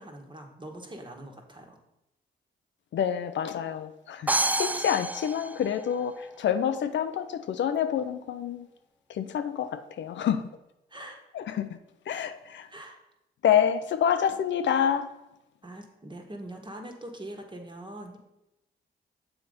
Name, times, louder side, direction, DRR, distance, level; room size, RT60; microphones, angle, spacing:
voice 1, 0.0-1.8 10.9-11.2 12.7-13.0 15.6-18.2, right 1 dB, 25° right, 2 dB, 1.6 m, -43 dB
voice 2, 2.9-8.7 9.1-10.5 11.3-11.8 12.1-12.7 13.4-15.1, left 9 dB, 70° left, 10 dB, 0.5 m, -27 dB
sound 1, 4.3-6.2, right 2 dB, 10° right, 0.3 m, -29 dB
7.0 x 4.0 x 5.1 m, 0.90 s
supercardioid pair, 55°, 20 cm